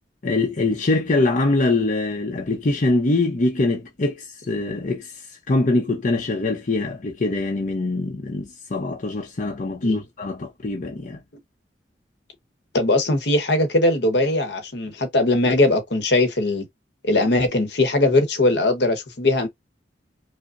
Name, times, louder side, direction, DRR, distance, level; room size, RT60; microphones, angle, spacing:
voice 1, 0.2-11.2, left 2 dB, 45° left, 0.6 m, -23 dB
voice 2, 12.7-16.6 17.0-19.5, left 2 dB, 65° left, 1.0 m, -20 dB
5.1 x 2.1 x 2.5 m
head